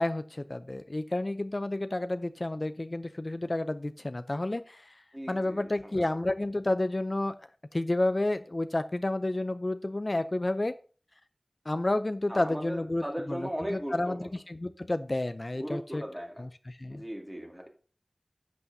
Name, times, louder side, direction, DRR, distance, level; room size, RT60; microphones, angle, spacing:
voice 1, 0.0-4.9 5.3-7.3 7.7-10.7 11.7-16.0 16.4-17.0, left 2 dB, 50° left, 11 dB, 0.5 m, -30 dB
voice 2, 5.1-6.0 12.3-14.3 15.5-16.5 16.9-17.7, equal, 15° right, 1 dB, 2.3 m, -38 dB
12.5 x 8.3 x 2.7 m, 0.39 s
wide cardioid pair, 45°, 0 cm